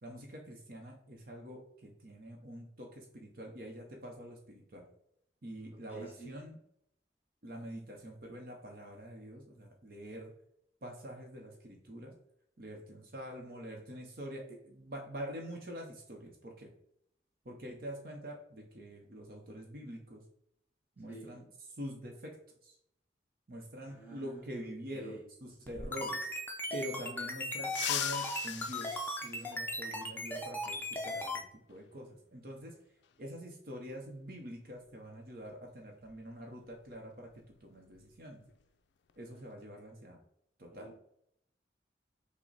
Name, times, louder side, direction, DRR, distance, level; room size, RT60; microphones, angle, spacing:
voice 1, 0.0-4.9 5.4-6.6 7.4-10.3 10.8-12.1 12.6-16.7 17.4-20.2 21.0-22.4 22.6-22.8 23.5-26.3 26.7-32.8 33.2-37.3 37.6-38.4 39.2-40.2 40.6-40.9, equal, 55° right, 1 dB, 0.8 m, -45 dB
voice 2, 5.9-6.4 21.1-21.4 23.8-24.4 24.9-25.2 40.7-41.0, right 2 dB, 10° right, -4 dB, 1.1 m, -48 dB
sound 1, 25.7-31.4, left 1 dB, 10° left, 0.5 m, -37 dB
sound 2, 27.6-30.1 31.7-31.8 33.0-33.1 34.8-34.9 35.3-35.5 36.0-38.2 38.4-38.7 39.1-39.5, left 11 dB, 75° left, 0.3 m, -41 dB
5.9 x 2.1 x 4.0 m, 0.72 s
head